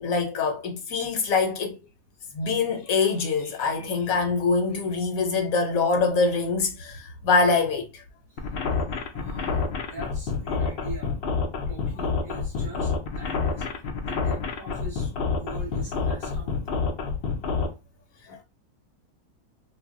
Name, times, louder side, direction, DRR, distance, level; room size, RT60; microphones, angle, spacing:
voice 1, 0.0-1.8 2.3-8.0 18.3-18.4, left 4 dB, 70° left, 0.9 m, -24 dB
sound 1, 8.4-17.7, left 5 dB, 90° left, 0.5 m, -28 dB
voice 2, 9.1-11.2 11.7-13.7 14.1-16.7, right 2 dB, 45° right, 0.8 m, -42 dB
2.5 x 2.0 x 3.5 m
omnidirectional pair, 1.6 m